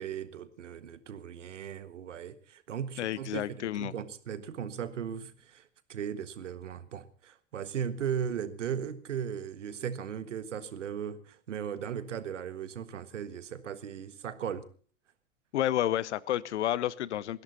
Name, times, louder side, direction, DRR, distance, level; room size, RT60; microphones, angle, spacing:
voice 1, 0.0-14.6, right 8 dB, 70° right, 13 dB, 1.6 m, -37 dB
voice 2, 3.0-3.9 15.5-17.4, left 12 dB, 65° left, 21 dB, 0.9 m, -30 dB
21.0 x 16.0 x 4.2 m, 0.43 s
figure-of-eight pair, 85°, 38 cm